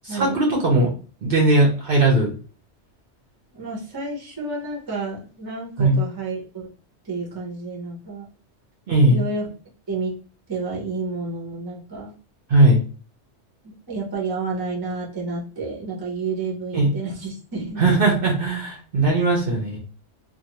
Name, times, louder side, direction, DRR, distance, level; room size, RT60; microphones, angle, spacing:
voice 1, 0.0-0.9 1.2-2.3 5.8-6.0 8.9-9.2 12.5-12.8 16.7-16.9 17.8-19.8, right 2 dB, 55° right, -1 dB, 0.8 m, -18 dB
voice 2, 3.5-6.7 7.0-8.3 9.1-9.5 9.9-10.1 10.5-12.1 13.9-17.8, right 3 dB, 20° right, -2 dB, 0.7 m, -30 dB
2.5 x 2.5 x 2.8 m, 0.38 s
omnidirectional pair, 1.2 m